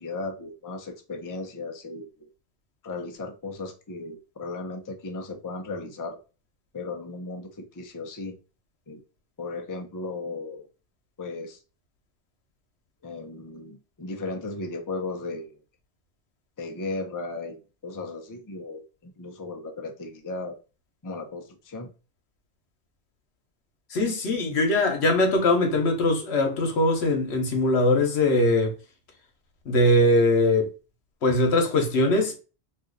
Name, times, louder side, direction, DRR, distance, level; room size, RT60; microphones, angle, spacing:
voice 1, 0.0-2.3 2.8-6.2 6.7-8.4 8.9-9.0 9.4-10.7 11.2-11.6 13.0-15.6 16.6-20.6 21.0-21.9, left 3 dB, 25° left, 0.4 m, -36 dB
voice 2, 23.9-28.7 29.7-30.7 31.2-32.4, left 1 dB, 75° left, 1.1 m, -21 dB
2.7 x 2.5 x 3.7 m
omnidirectional pair, 1.1 m